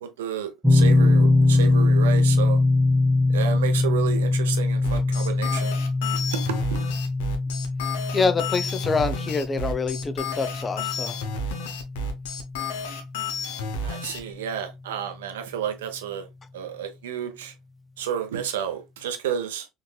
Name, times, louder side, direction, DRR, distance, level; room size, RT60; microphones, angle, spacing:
voice 1, 0.0-2.6 3.3-5.7 6.7-6.8 13.8-16.3 16.5-17.5 18.0-19.7, right 9 dB, 80° right, 0.6 m, -31 dB
sound 1, 0.6-13.6, left 2 dB, 10° right, 0.7 m, -22 dB
sound 2, 4.8-14.2, left 3 dB, 75° left, 0.6 m, -31 dB
voice 2, 8.1-11.2, left 4 dB, 30° left, 0.5 m, -26 dB
3.9 x 2.6 x 2.2 m
hypercardioid pair, 75°, 0 cm